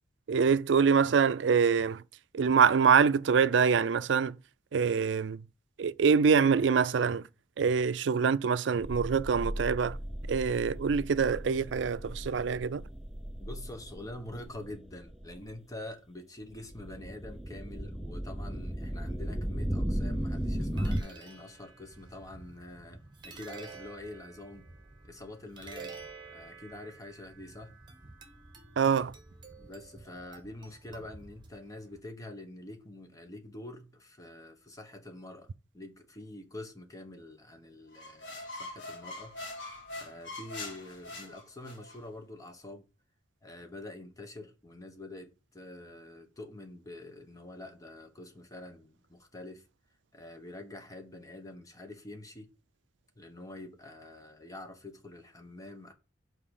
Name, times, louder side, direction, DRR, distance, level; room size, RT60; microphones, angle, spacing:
voice 1, 0.3-2.0 2.3-4.4 4.7-5.4 5.8-7.3 7.6-10.0 10.3-12.8 28.8-29.1, right 6 dB, 80° right, 0.4 m, -25 dB
sound 1, 8.8-15.5 16.5-21.0, equal, ahead, 0.6 m, -36 dB
voice 2, 13.4-24.7 25.0-26.0 26.3-27.7 29.6-39.3 40.0-42.8 43.4-49.6 50.1-52.5 53.2-55.9, left 1 dB, 20° left, 1.2 m, -46 dB
sound 2, 19.9-32.0, right 4 dB, 25° right, 1.5 m, -50 dB
sound 3, 37.9-42.0, left 2 dB, 85° left, 2.0 m, -43 dB
5.7 x 4.6 x 6.5 m
head